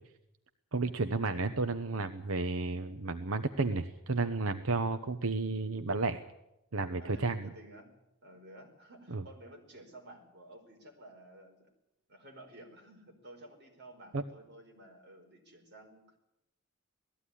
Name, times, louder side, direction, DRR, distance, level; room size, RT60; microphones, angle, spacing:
voice 1, 0.7-6.2 6.7-7.5 9.1-9.2 14.1-14.2, right 3 dB, 90° right, 9 dB, 0.9 m, -32 dB
voice 2, 6.8-7.9 8.2-11.7 12.1-16.2, right 1 dB, 55° right, 2 dB, 5.0 m, -53 dB
19.0 x 14.5 x 9.9 m, 0.87 s
head